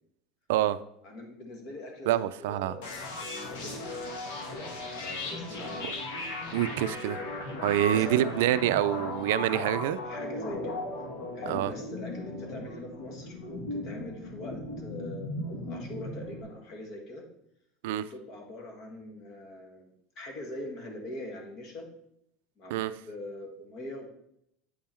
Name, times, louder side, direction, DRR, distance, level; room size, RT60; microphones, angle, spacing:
voice 1, 1.0-4.0 4.9-5.9 7.9-8.4 10.0-10.8 11.3-17.2 18.1-19.9 20.1-21.9 22.6-24.1, left 1 dB, 35° left, 3 dB, 1.6 m, -43 dB
voice 2, 2.1-2.8 5.8-5.9 6.5-7.2 7.6-10.0 11.5-11.7 17.8-18.1 22.7-22.9, right 13 dB, 75° right, 14 dB, 0.4 m, -26 dB
sound 1, 2.8-16.4, left 2 dB, 65° left, 1.8 m, -37 dB
8.4 x 5.6 x 4.4 m, 0.76 s
supercardioid pair, 170°, 0 cm